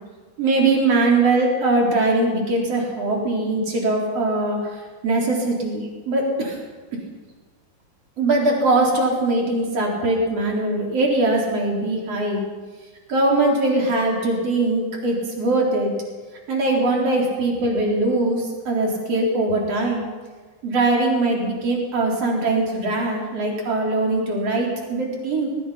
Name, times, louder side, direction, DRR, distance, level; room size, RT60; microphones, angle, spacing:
voice 1, 0.4-6.6 8.2-12.4 13.1-15.9 16.5-20.1 20.6-25.5, right 2 dB, 40° right, -1 dB, 4.8 m, -21 dB
22.0 x 20.5 x 5.8 m, 1.4 s
omnidirectional pair, 4.4 m